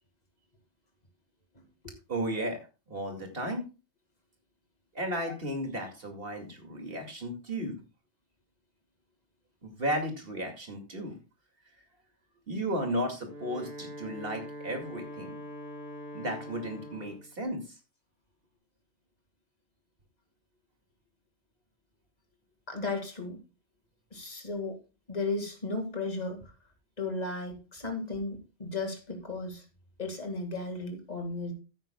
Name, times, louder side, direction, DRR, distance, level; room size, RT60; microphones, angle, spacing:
voice 1, 2.1-2.6 2.9-3.7 4.9-7.8 9.6-11.2 12.5-15.3 16.1-17.6, right 1 dB, 65° right, 4 dB, 2.5 m, -34 dB
Wind instrument woodwind instrument, 13.2-17.3, equal, 80° right, 4.4 m, -43 dB
voice 2, 22.7-23.4 24.1-24.8 25.1-26.4 27.0-29.6 30.0-31.5, left 3 dB, 40° left, 5 dB, 2.2 m, -35 dB
15.0 x 9.1 x 2.3 m, 0.30 s
omnidirectional pair, 1.1 m